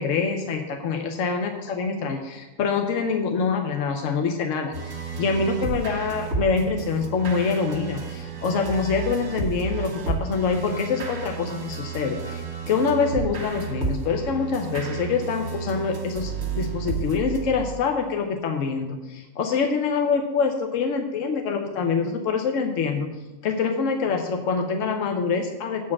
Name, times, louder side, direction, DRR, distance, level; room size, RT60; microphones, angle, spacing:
voice 1, 0.0-4.7 5.2-23.1 23.4-25.9, left 5 dB, 60° left, 4 dB, 0.8 m, -25 dB
sound 1, 4.7-18.0, right 5 dB, 50° right, 1.9 m, -32 dB
8.3 x 5.0 x 7.0 m, 1.1 s
omnidirectional pair, 2.0 m